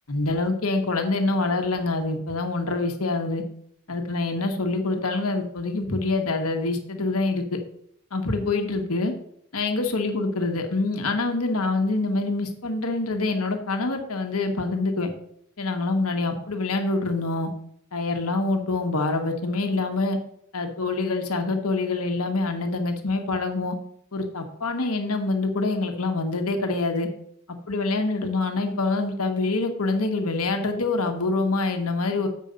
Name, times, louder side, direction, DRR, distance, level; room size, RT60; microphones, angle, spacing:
voice 1, 0.1-3.4 3.9-7.4 8.1-9.1 9.5-15.1 15.6-17.5 17.9-20.2 20.5-23.8 24.1-27.1 27.5-32.3, left 3 dB, 85° left, 4 dB, 1.3 m, -25 dB
7.5 x 5.2 x 6.7 m, 0.69 s
head